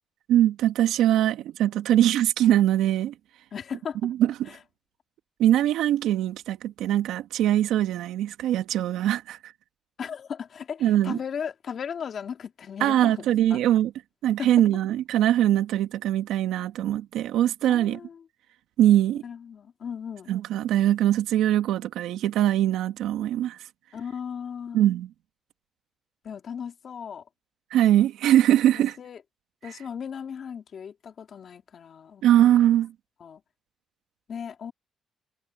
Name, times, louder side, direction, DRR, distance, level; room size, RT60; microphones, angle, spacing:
voice 1, 0.3-3.1 4.0-4.5 5.4-9.5 10.8-11.2 12.8-13.9 14.2-18.0 18.8-19.2 20.3-23.6 24.7-25.1 27.7-29.0 32.2-32.9, right 12 dB, 85° right, 2.2 m, -22 dB
voice 2, 3.5-4.0 4.5-4.6 10.0-13.6 14.4-14.5 17.7-18.3 19.2-20.3 23.9-24.9 26.2-27.2 28.7-29.2 29.6-32.8 33.2-33.4 34.3-34.7, left 7 dB, 55° left, 2.9 m, -37 dB
cardioid pair, 90°, 0 cm